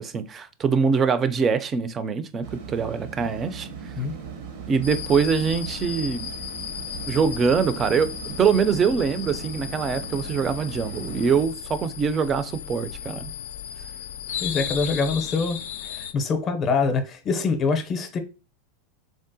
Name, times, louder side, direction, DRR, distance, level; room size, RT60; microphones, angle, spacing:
voice 1, 0.0-3.7 4.7-6.3 7.1-13.3, right 6 dB, 25° right, 0.3 m, -23 dB
sound 1, 2.4-11.5, right 6 dB, 65° right, 0.6 m, -39 dB
sound 2, 4.8-16.1, left 8 dB, 85° left, 0.3 m, -35 dB
voice 2, 14.4-18.2, left 4 dB, 35° left, 0.5 m, -25 dB
3.6 x 2.0 x 2.6 m
hypercardioid pair, 120°, 0 cm